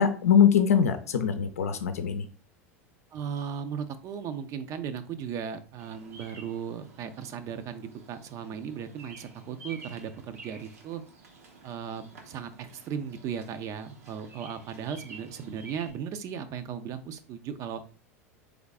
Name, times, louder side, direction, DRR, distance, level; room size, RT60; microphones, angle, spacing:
voice 1, 0.0-2.2, left 7 dB, 80° left, 8 dB, 0.6 m, -22 dB
voice 2, 3.1-11.0 11.6-17.8, right 7 dB, 45° right, 10 dB, 0.6 m, -36 dB
Bird vocalization bird call bird song, 5.8-15.9, right 3 dB, 75° right, 1.2 m, -50 dB
3.9 x 3.6 x 3.6 m, 0.39 s
hypercardioid pair, 85°, 8 cm